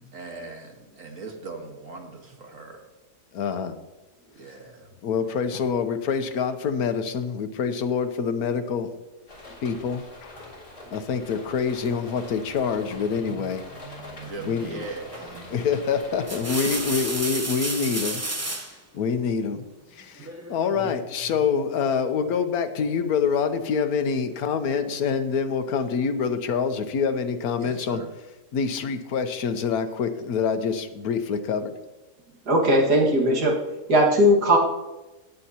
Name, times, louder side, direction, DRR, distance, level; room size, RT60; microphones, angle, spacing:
voice 1, 0.1-2.9 4.4-4.9 14.2-15.3 27.6-28.1, right 3 dB, 55° right, 2 dB, 1.9 m, -39 dB
voice 2, 3.3-3.7 5.0-8.9 9.6-10.5 10.9-13.6 14.4-14.9 15.5-18.2 18.9-19.6 19.9-28.0 28.5-31.7, left 6 dB, 70° left, 9 dB, 1.3 m, -26 dB
sound 1, 9.3-17.1, left 2 dB, 35° left, 3.2 m, -44 dB
voice 3, 13.9-14.8 15.4-15.6 32.5-33.6 33.9-34.6, equal, 75° right, -1 dB, 2.4 m, -20 dB
sound 2, 15.1-15.4 16.0-18.8 20.2-20.9, right 1 dB, 15° right, 0.6 m, -31 dB
19.0 x 7.8 x 2.9 m, 1.1 s
omnidirectional pair, 1.7 m